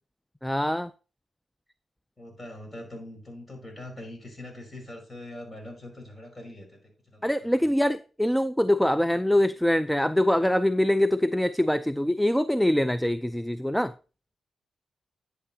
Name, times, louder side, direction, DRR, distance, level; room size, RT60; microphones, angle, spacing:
voice 1, 0.4-0.9 7.2-13.9, left 1 dB, 5° left, 0.4 m, -24 dB
voice 2, 2.2-7.5, left 1 dB, 25° left, 5.4 m, -43 dB
11.0 x 8.3 x 2.8 m
cardioid pair, 75°, 0 cm